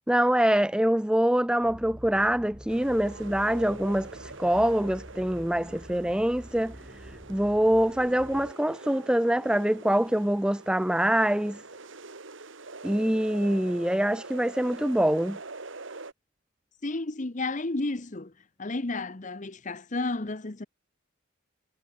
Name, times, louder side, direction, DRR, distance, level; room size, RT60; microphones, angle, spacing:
voice 1, 0.1-11.6 12.8-15.4, right 1 dB, 5° right, 0.4 m, -25 dB
sound 1, 1.6-8.5, equal, 20° right, 2.4 m, -47 dB
sound 2, 2.7-16.1, right 3 dB, 60° right, 1.7 m, -44 dB
voice 2, 16.8-18.3 18.6-20.7, left 2 dB, 35° left, 0.9 m, -32 dB
head